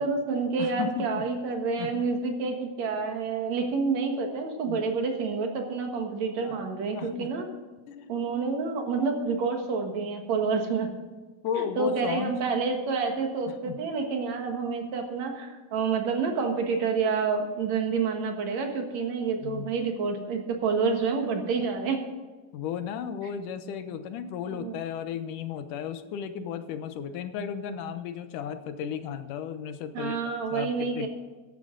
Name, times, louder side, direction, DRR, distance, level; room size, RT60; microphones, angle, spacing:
voice 1, 0.0-7.4 8.1-10.9 11.6-22.1 24.5-24.7 29.9-31.1, right 4 dB, 65° right, 4 dB, 2.7 m, -28 dB
voice 2, 0.6-1.2 1.8-2.0 4.7-4.8 6.4-7.3 7.9-8.1 11.4-12.3 13.5-13.8 19.4-19.7 22.5-31.1, left 8 dB, 85° left, 10 dB, 2.5 m, -35 dB
14.0 x 11.0 x 3.8 m, 1.3 s
omnidirectional pair, 3.6 m